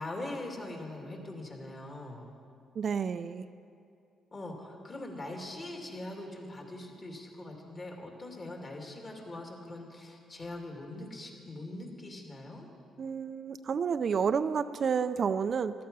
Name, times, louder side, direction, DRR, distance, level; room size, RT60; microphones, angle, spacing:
voice 1, 0.0-2.2 4.3-12.7, left 2 dB, 35° left, 1 dB, 2.5 m, -42 dB
voice 2, 2.8-3.5 13.0-15.7, right 6 dB, 50° right, 11 dB, 0.4 m, -30 dB
14.5 x 12.0 x 5.5 m, 2.5 s
cardioid pair, 90°, 0 cm